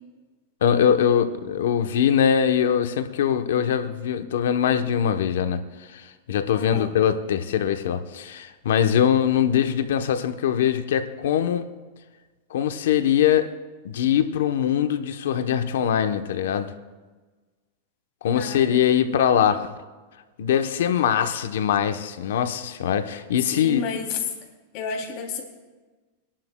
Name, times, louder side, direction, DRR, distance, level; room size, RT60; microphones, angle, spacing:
voice 1, 0.6-11.7 12.5-13.5 13.8-16.7 18.2-19.7 20.4-23.8, left 9 dB, 85° left, 8 dB, 0.9 m, -22 dB
voice 2, 6.5-6.9 18.3-18.8 23.5-24.2 24.7-25.4, left 4 dB, 50° left, 1 dB, 2.9 m, -31 dB
28.0 x 11.5 x 2.3 m, 1.3 s
supercardioid pair, 150°, 0 cm